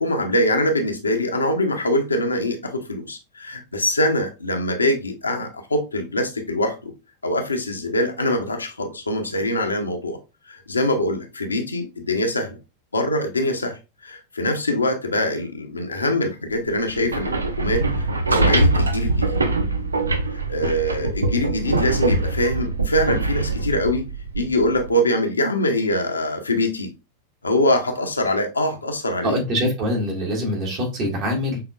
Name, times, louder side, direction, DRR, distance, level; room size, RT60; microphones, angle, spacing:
voice 1, 0.0-6.9 7.2-10.2 10.5-12.6 12.9-19.3 20.5-24.0 24.3-26.9 27.4-29.4, left 1 dB, 80° left, 0.9 m, -23 dB
sound 1, 16.9-24.9, right 2 dB, 75° right, 0.6 m, -23 dB
voice 2, 29.2-31.6, equal, 40° right, 2.0 m, -24 dB
5.8 x 3.5 x 2.4 m
figure-of-eight pair, 90°, 0 cm